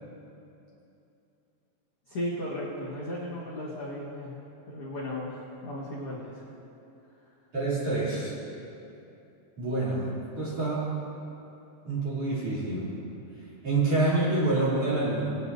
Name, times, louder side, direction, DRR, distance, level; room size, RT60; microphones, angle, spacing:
voice 1, 2.1-4.3 4.7-6.4, left 1 dB, 65° left, -8 dB, 1.4 m, -35 dB
voice 2, 7.5-8.3 9.6-10.0 10.4-10.9 11.9-12.9 13.6-15.3, right 2 dB, 35° right, -10 dB, 3.7 m, -27 dB
21.5 x 9.7 x 2.7 m, 2.8 s
omnidirectional pair, 5.2 m